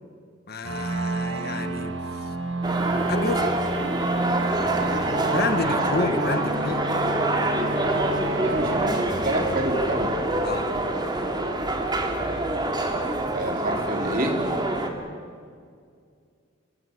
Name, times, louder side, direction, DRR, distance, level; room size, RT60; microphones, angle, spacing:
voice 1, 0.5-1.9 2.2-2.3 3.1-3.5 5.2-6.8 10.4-10.7, left 3 dB, 55° left, 9 dB, 1.6 m, -29 dB
sound 1, 0.6-10.0, right 2 dB, 80° right, 1.9 m, -30 dB
sound 2, 2.6-14.9, right 2 dB, 25° right, 2.6 m, -26 dB
voice 2, 8.4-10.1 13.2-14.4, right 1 dB, 50° right, 3 dB, 3.8 m, -28 dB
26.5 x 20.5 x 8.3 m, 2.2 s
head